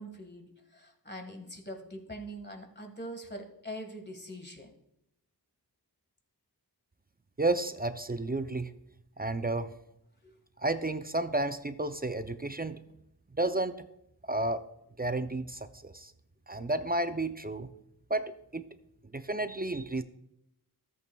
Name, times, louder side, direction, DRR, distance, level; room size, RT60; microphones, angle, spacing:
voice 1, 0.0-4.7 10.2-10.3, equal, 25° left, 5 dB, 1.7 m, -43 dB
voice 2, 7.4-8.7 9.2-9.7 10.6-12.8 13.3-13.9 14.3-14.6 15.0-16.1 16.5-17.7 18.1-18.7 19.1-20.0, right 2 dB, 25° right, 10 dB, 0.5 m, -32 dB
13.5 x 8.2 x 2.3 m, 0.79 s
wide cardioid pair, 45°, 39 cm